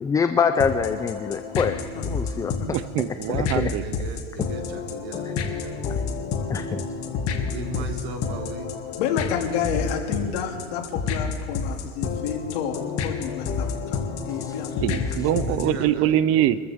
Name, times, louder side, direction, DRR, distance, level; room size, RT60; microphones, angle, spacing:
voice 1, 0.0-1.8 2.0-2.5 3.6-3.7 6.5-6.8 14.4-14.5, left 6 dB, 10° left, 9 dB, 0.3 m, -24 dB
sound 1, 0.6-15.8, left 5 dB, 45° left, 2.1 m, -29 dB
voice 2, 1.9-2.7 9.0-14.0 14.3-15.1, left 7 dB, 75° left, 1 dB, 2.6 m, -30 dB
voice 3, 2.7-3.8 14.8-16.6, right 12 dB, 45° right, 16 dB, 0.6 m, -23 dB
voice 4, 3.2-5.9 7.3-8.7 15.4-16.2, right 5 dB, 75° right, 5 dB, 2.2 m, -38 dB
26.0 x 14.0 x 3.6 m, 2.1 s
supercardioid pair, 135°, 32 cm